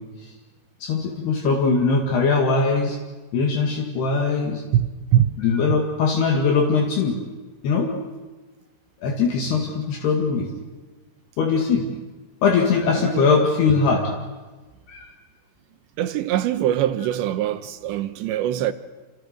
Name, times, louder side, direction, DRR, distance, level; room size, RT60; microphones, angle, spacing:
voice 1, 0.8-3.0 3.3-4.6 5.4-7.2 7.6-7.9 9.0-10.5 11.4-11.9 12.4-14.1 14.9-15.1, left 4 dB, 70° left, 3.9 m, -21 dB
voice 2, 4.7-5.4 5.7-5.8 13.0-13.4 16.0-18.7, right 11 dB, 80° right, 3.3 m, -23 dB
27.5 x 26.5 x 6.6 m
omnidirectional pair, 5.1 m